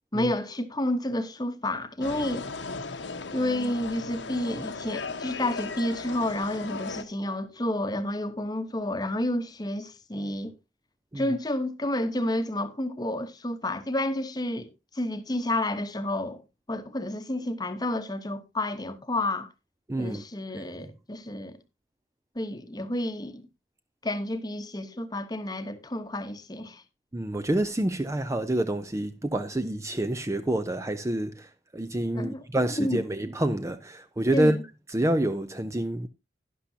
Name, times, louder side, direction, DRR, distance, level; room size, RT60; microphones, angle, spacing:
voice 1, 0.1-2.5 3.3-10.5 11.2-16.4 16.7-19.5 20.0-21.6 22.3-23.5 24.0-26.8 32.1-32.4 32.8-33.0 34.3-34.6, left 1 dB, 20° left, 0.9 m, -30 dB
sound 1, 2.0-7.0, left 4 dB, 80° left, 1.1 m, -36 dB
voice 2, 19.9-20.2 20.8-20.9 27.1-34.6 34.9-36.1, right 1 dB, 15° right, 0.5 m, -28 dB
11.5 x 11.5 x 2.7 m
head